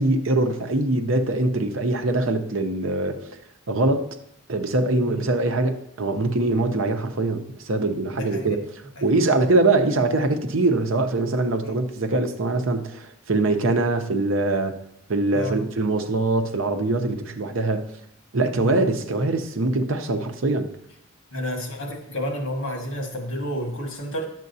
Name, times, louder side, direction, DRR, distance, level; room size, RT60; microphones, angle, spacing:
voice 1, 0.0-3.3 3.7-4.2 4.5-14.7 15.1-17.9 18.3-20.7, right 2 dB, 70° right, 0.7 m, -23 dB
voice 2, 8.1-8.6 9.0-9.1 11.6-11.8 15.3-15.6 18.6-18.9 21.3-24.3, equal, 80° left, 1.7 m, -30 dB
10.5 x 7.5 x 2.7 m
head